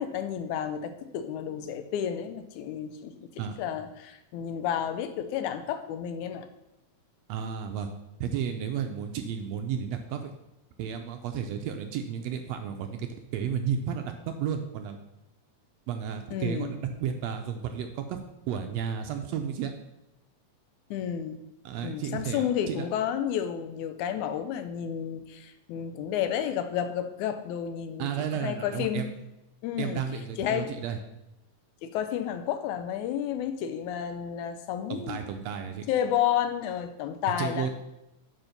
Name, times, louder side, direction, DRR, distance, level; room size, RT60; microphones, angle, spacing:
voice 1, 0.0-3.3 3.6-6.5 16.3-16.7 20.9-21.4 21.8-28.1 28.3-29.1 29.6-30.0 30.4-30.8 31.8-35.2 35.9-37.7, left 9 dB, 85° left, 9 dB, 2.1 m, -31 dB
voice 2, 7.3-7.9 8.2-10.3 10.8-13.1 13.3-15.0 15.9-18.2 18.5-19.7 21.6-22.9 28.0-29.1 29.8-31.0 34.9-35.9 37.4-37.7, right 8 dB, 80° right, 6 dB, 1.6 m, -32 dB
8.0 x 4.4 x 5.7 m, 0.91 s
omnidirectional pair, 3.3 m